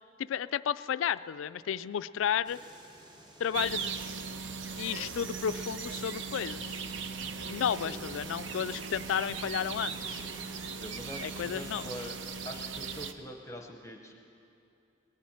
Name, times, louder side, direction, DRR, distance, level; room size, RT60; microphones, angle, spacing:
voice 1, 0.2-2.6 3.4-3.9 4.8-6.8 7.5-10.3 11.2-11.9, left 8 dB, 80° left, 15 dB, 0.3 m, -32 dB
sound 1, 2.4-12.5, right 1 dB, 20° right, 1.1 m, -52 dB
sound 2, 3.5-13.1, right 5 dB, 65° right, 0.7 m, -39 dB
voice 2, 7.7-8.0 10.7-12.2 12.4-14.1, equal, 15° left, 2 dB, 0.7 m, -44 dB
19.5 x 7.4 x 8.6 m, 2.6 s
head